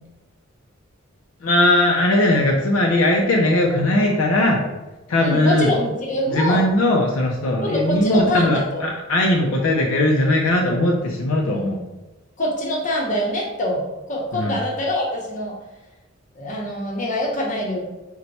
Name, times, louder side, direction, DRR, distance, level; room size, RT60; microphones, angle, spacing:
voice 1, 1.4-4.7 5.1-5.7 6.3-11.8 14.3-14.6, left 1 dB, 65° left, 0 dB, 0.5 m, -19 dB
voice 2, 5.2-6.7 7.6-8.9 11.5-11.8 12.4-15.5 16.3-17.8, left 1 dB, 35° left, -2 dB, 0.8 m, -24 dB
4.3 x 2.2 x 4.0 m, 1.1 s
head